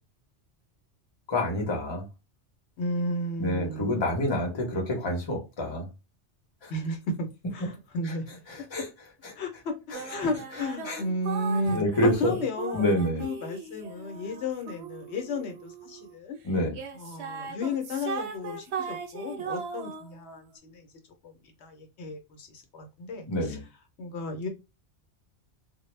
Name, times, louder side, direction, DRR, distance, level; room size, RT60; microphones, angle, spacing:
voice 1, 1.3-2.0 3.4-5.9 6.6-6.7 8.5-8.8 9.2-9.3 9.9-10.0 10.9-11.0 11.7-12.4 12.7-13.3 16.4-16.8 23.2-23.6, left 1 dB, 30° left, 0.7 m, -27 dB
voice 2, 2.8-4.0 6.7-8.4 9.4-9.7 10.1-16.4 16.9-20.9 21.2-21.3 21.6-23.6 24.0-24.5, left 2 dB, 75° left, 0.9 m, -33 dB
sound 1, 9.9-16.2 16.7-20.4, right 6 dB, 75° right, 0.8 m, -38 dB
2.1 x 2.0 x 3.1 m
omnidirectional pair, 1.2 m